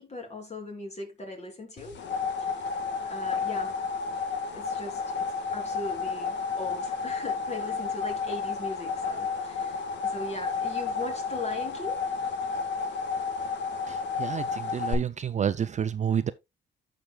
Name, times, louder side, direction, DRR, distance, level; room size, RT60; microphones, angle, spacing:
voice 1, 0.0-2.0 2.4-2.6 3.0-3.8 4.5-5.3 5.5-12.0, left 2 dB, 35° left, 3.1 m, -39 dB
sound 1, 1.8-14.9, left 5 dB, 65° left, 1.6 m, -31 dB
voice 2, 13.9-16.3, right 8 dB, 35° right, 0.4 m, -29 dB
14.0 x 5.1 x 2.3 m
cardioid pair, 90°, 20 cm